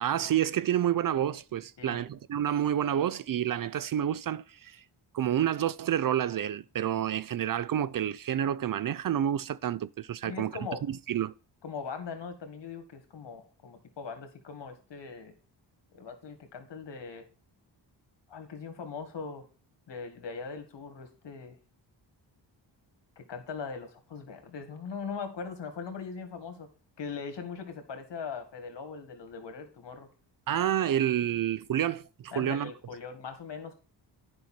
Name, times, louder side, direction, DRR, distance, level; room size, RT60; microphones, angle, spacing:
voice 1, 0.0-4.8 5.1-10.5 11.1-11.3 30.5-32.7, right 10 dB, 50° right, 0.5 m, -29 dB
voice 2, 10.2-10.8 11.6-15.3 15.9-17.3 18.3-19.5 19.9-21.6 23.2-26.7 27.0-30.1 32.3-33.8, left 5 dB, 65° left, 2.0 m, -40 dB
9.4 x 5.5 x 4.4 m
cardioid pair, 70°, 46 cm